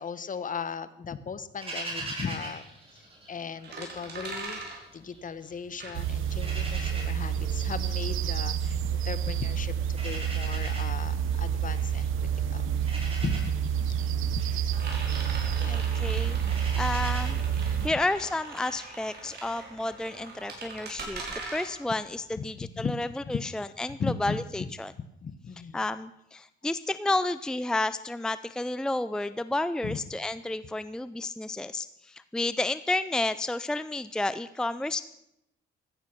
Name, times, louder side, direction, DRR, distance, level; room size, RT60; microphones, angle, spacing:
voice 1, 0.0-2.6 2.9-4.6 4.9-12.7 13.0-13.6 14.3-14.6 15.6-15.8 17.9-18.0 22.4-23.4 24.0-24.7 25.2-25.8 29.8-30.0, left 6 dB, 40° left, 14 dB, 1.2 m, -37 dB
sound 1, 1.6-3.9 4.2-5.5 5.8-17.3, right 2 dB, 30° right, 5.9 m, -42 dB
sound 2, 3.6-6.5 6.8-23.2, right 3 dB, 55° right, 5.7 m, -42 dB
sound 3, 5.9-17.9, right 8 dB, 85° right, 1.0 m, -29 dB
voice 2, 15.7-16.4 16.8-24.9 25.7-35.0, left 2 dB, 5° left, 13 dB, 0.5 m, -31 dB
15.5 x 14.0 x 6.0 m, 0.82 s
cardioid pair, 90°, 20 cm